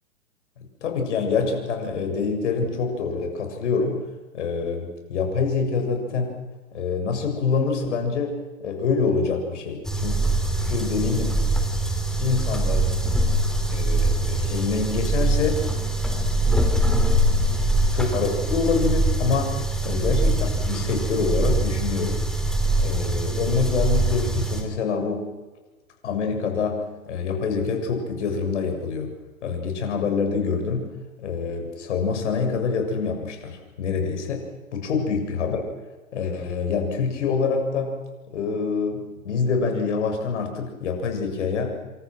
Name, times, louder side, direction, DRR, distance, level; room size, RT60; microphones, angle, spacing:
voice 1, 0.8-4.0 4.3-6.3 6.7-8.3 8.6-10.2 10.7-11.4 12.2-13.2 13.7-15.6 16.4-16.5 17.9-22.3 22.8-25.2 26.0-29.1 29.4-30.9 31.2-34.4 34.7-35.6 36.1-38.0 38.3-41.7, left 5 dB, 55° left, 4 dB, 7.3 m, -26 dB
sound 1, 9.8-24.6, right 2 dB, ahead, 3.9 m, -23 dB
28.0 x 27.0 x 6.3 m, 1.2 s
figure-of-eight pair, 115°, 42 cm